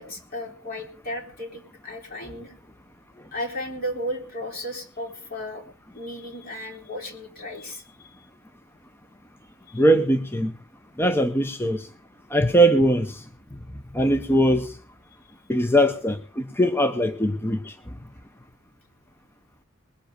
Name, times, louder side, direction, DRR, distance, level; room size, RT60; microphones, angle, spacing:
voice 1, 0.0-2.5 3.3-5.6 5.9-8.2 9.7-9.8, equal, 45° left, 3.5 m, -34 dB
voice 2, 9.7-10.5 11.0-11.9 12.3-13.2 13.9-14.7 15.5-17.7, right 1 dB, 10° left, 0.7 m, -21 dB
20.5 x 7.7 x 6.4 m
head